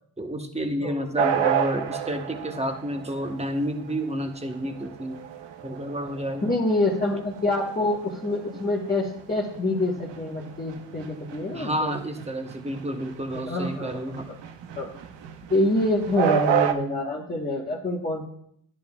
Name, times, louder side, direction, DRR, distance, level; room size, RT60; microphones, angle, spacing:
voice 1, 0.2-5.2 5.6-6.6 11.5-14.3, equal, 15° right, 5 dB, 1.1 m, -30 dB
sound 1, 1.2-16.7, right 9 dB, 60° right, 0.9 m, -30 dB
voice 2, 6.4-11.9 13.5-14.0 14.3-14.4 14.8-14.9 15.5-18.3, left 2 dB, 20° left, -4 dB, 1.4 m, -26 dB
10.5 x 7.3 x 2.3 m, 0.67 s
supercardioid pair, 70°, 49 cm